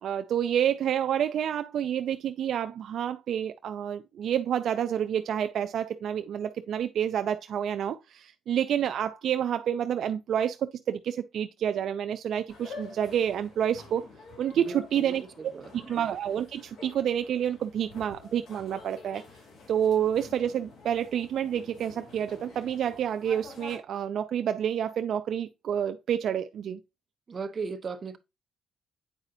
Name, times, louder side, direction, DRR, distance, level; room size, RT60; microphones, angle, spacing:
voice 1, 0.0-14.1 14.4-19.2 19.7-26.8, right 9 dB, 65° right, 0.4 m, -29 dB
sound 1, 12.5-23.8, left 3 dB, 70° left, 2.7 m, -48 dB
voice 2, 14.5-15.9 27.3-28.2, right 4 dB, 40° right, 0.9 m, -37 dB
8.2 x 4.9 x 2.6 m
cardioid pair, 90°, 0 cm